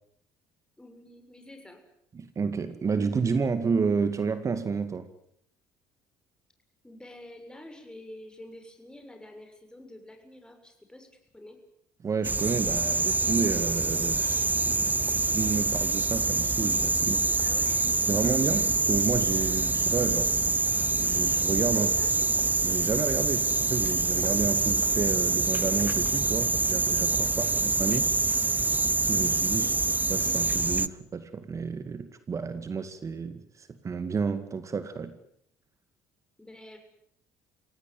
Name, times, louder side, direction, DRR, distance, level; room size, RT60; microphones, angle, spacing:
voice 1, 0.8-1.8 6.8-11.6 17.4-17.9 18.5-18.7 20.1-20.4 21.7-22.3 27.2-27.6 29.5-29.8 36.4-36.8, left 1 dB, 10° left, 5 dB, 7.2 m, -48 dB
voice 2, 2.1-5.1 12.0-17.4 18.1-20.3 21.0-21.9 22.6-28.2 29.1-29.7 30.1-35.2, right 5 dB, 35° right, 11 dB, 2.1 m, -30 dB
sound 1, 12.2-30.9, right 3 dB, 20° right, 0.9 m, -26 dB
26.0 x 17.5 x 9.2 m, 0.71 s
hypercardioid pair, 60°, 9 cm